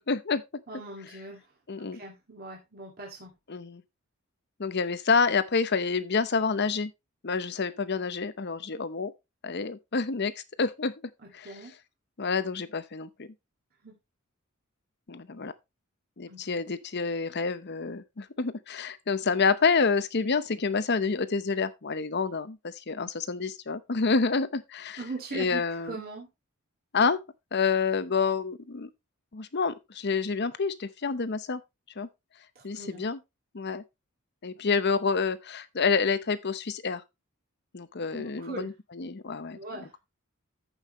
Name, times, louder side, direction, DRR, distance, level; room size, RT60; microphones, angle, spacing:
voice 1, 0.1-0.4 1.7-2.0 3.5-3.8 4.6-6.9 7.2-9.1 9.4-10.3 10.6-10.9 11.3-11.6 12.2-13.3 15.1-15.5 16.2-25.0 25.3-26.0 26.9-27.2 27.5-28.9 29.3-31.6 32.0-32.1 32.6-33.2 33.5-33.8 34.4-37.0 37.7-39.8, left 5 dB, 50° left, 0.8 m, -28 dB
voice 2, 0.7-1.4 2.0-3.3 11.4-11.7 13.8-13.9 16.3-16.4 25.0-26.3 32.6-33.0 38.1-38.7 39.5-39.9, right 2 dB, 45° right, 2.2 m, -40 dB
14.0 x 5.6 x 3.0 m
head